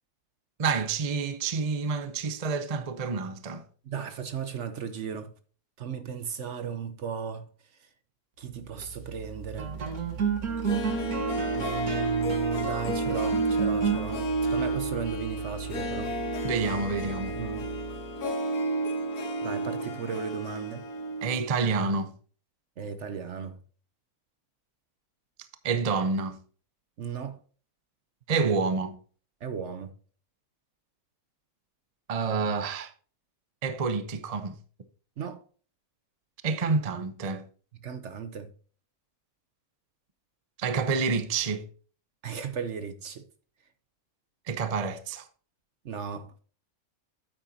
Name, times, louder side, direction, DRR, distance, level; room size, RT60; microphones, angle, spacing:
voice 1, 0.6-3.6 16.4-17.4 21.2-22.1 25.6-26.4 28.3-29.0 32.1-32.9 33.6-34.6 36.4-37.5 40.6-41.6 44.5-45.3, right 4 dB, 35° right, 0.7 m, -28 dB
voice 2, 3.9-5.3 5.8-7.5 8.4-9.7 11.5-14.2 14.5-16.1 17.3-17.7 19.4-20.9 22.8-23.6 27.0-27.4 29.4-29.9 35.2-35.4 37.8-38.5 42.2-43.2 45.8-46.3, right 6 dB, 55° right, 1.0 m, -36 dB
sound 1, 8.6-18.2, right 6 dB, 80° right, 1.9 m, -34 dB
Harp, 10.5-21.5 21.8-21.9, right 2 dB, 80° left, 1.8 m, -31 dB
9.0 x 8.9 x 2.8 m
omnidirectional pair, 1.6 m